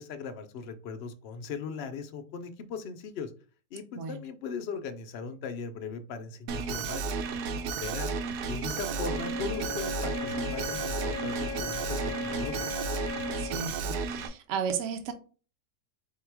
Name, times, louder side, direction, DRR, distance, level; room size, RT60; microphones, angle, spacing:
voice 1, 0.0-3.3 3.7-7.2 7.8-8.1 8.4-12.6, left 5 dB, 75° left, 0.5 m, -38 dB
Alarm, 6.5-14.3, right 5 dB, 80° right, 1.1 m, -33 dB
Wind instrument woodwind instrument, 8.7-13.7, left 5 dB, 25° left, 0.3 m, -38 dB
voice 2, 13.4-15.1, right 6 dB, 60° right, 0.9 m, -34 dB
3.7 x 2.8 x 4.5 m
omnidirectional pair, 1.7 m